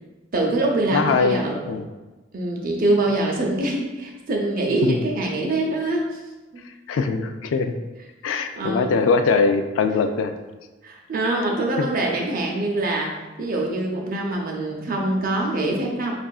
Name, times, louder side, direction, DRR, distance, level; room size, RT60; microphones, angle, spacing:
voice 1, 0.3-1.6 2.3-6.1 6.5-6.6 8.6-9.0 10.8-16.1, right 2 dB, 45° right, 0 dB, 0.6 m, -24 dB
voice 2, 0.9-1.9 4.8-5.0 6.6-7.7 8.2-10.3 11.8-11.9, left 4 dB, 85° left, 9 dB, 0.3 m, -22 dB
5.4 x 2.4 x 2.3 m, 1.2 s
head